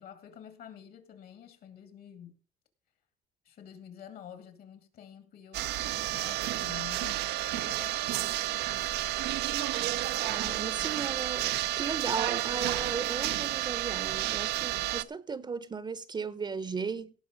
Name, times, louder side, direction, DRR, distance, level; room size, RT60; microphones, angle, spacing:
voice 1, 0.0-2.3 3.4-8.7 10.4-11.0 14.8-14.9, left 9 dB, 65° left, 2.3 m, -49 dB
sound 1, 5.5-15.0, right 15 dB, 80° right, 0.5 m, -31 dB
voice 2, 9.4-9.9 10.2-17.1, right 5 dB, 25° right, 0.7 m, -36 dB
17.0 x 5.7 x 5.1 m
cardioid pair, 110°, 17 cm